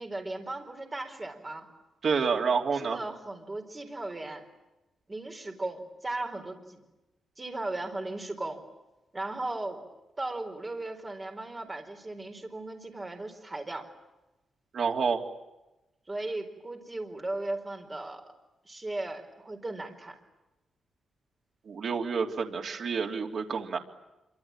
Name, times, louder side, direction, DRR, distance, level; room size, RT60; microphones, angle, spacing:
voice 1, 0.0-1.7 2.8-4.4 5.1-6.8 7.4-8.6 9.1-9.9 10.2-13.9 16.1-18.2 18.6-20.2, right 2 dB, 15° right, 3 dB, 4.4 m, -37 dB
voice 2, 2.0-3.0 14.7-15.2 21.7-23.8, right 5 dB, 45° right, 2 dB, 3.2 m, -28 dB
26.5 x 25.0 x 9.0 m, 0.99 s
wide cardioid pair, 175°, 0 cm